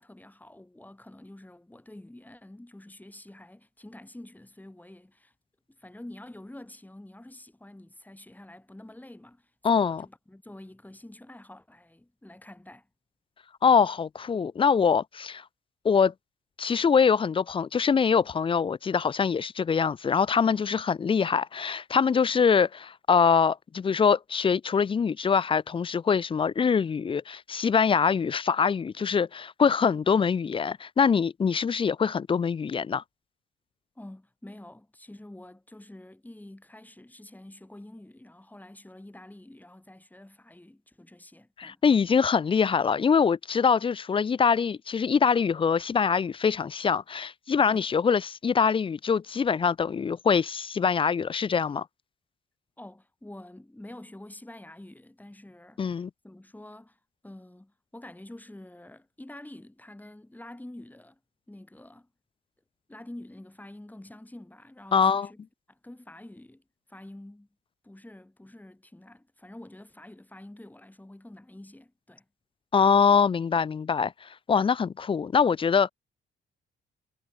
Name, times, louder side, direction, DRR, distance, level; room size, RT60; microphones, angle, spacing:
voice 1, 0.0-5.3 5.8-9.5 9.8-12.9 34.0-41.8 47.7-47.9 52.8-61.2 61.5-62.1 62.9-65.4 65.7-66.6 66.9-67.5 67.8-72.2, left 1 dB, 10° left, 5.7 m, -47 dB
voice 2, 9.6-10.1 13.6-15.4 15.8-16.1 16.6-33.0 41.6-51.9 55.8-56.1 64.9-65.3 72.7-75.9, left 6 dB, 25° left, 0.4 m, -24 dB
cardioid pair, 90°, 20 cm